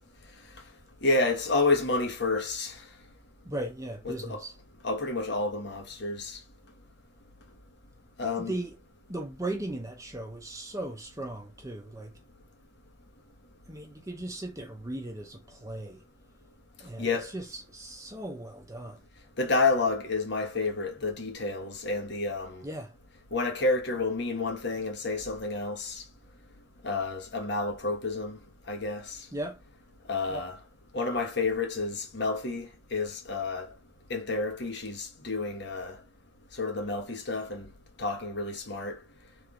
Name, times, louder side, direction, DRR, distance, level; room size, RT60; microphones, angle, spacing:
voice 1, 1.0-2.8 4.0-4.4 4.8-6.4 8.2-8.5 17.0-17.3 19.4-22.6 23.3-26.0 26.8-28.4 28.7-29.2 30.1-30.6 30.9-33.7 34.1-36.0 36.6-37.7 38.0-39.0, left 3 dB, 60° left, 1.2 m, -30 dB
voice 2, 3.5-4.5 8.4-8.8 9.1-12.1 13.7-16.0 16.8-19.0 22.6-22.9 29.3-29.6 30.3-30.5, right 1 dB, 15° right, 0.7 m, -37 dB
3.4 x 3.3 x 3.7 m
head